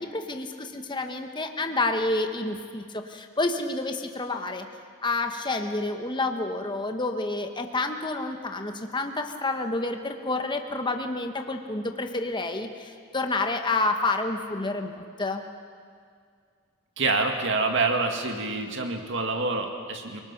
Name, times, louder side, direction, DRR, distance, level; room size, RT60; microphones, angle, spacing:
voice 1, 0.0-4.7 5.0-15.4, left 2 dB, 20° left, 5 dB, 1.1 m, -29 dB
voice 2, 17.0-20.2, right 3 dB, 55° right, 4 dB, 2.2 m, -26 dB
29.0 x 19.5 x 5.9 m, 2.1 s
head